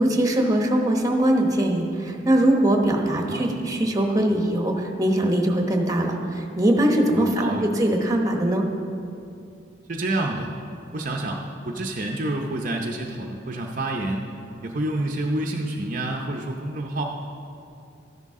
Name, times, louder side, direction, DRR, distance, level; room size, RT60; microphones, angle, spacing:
voice 1, 0.0-8.7, right 1 dB, 15° right, 2 dB, 1.0 m, -21 dB
voice 2, 3.1-3.4 7.2-7.7 9.9-10.5 10.9-14.3 14.6-17.0, right 1 dB, 40° right, 0 dB, 0.6 m, -28 dB
13.5 x 10.5 x 3.7 m, 2.6 s
head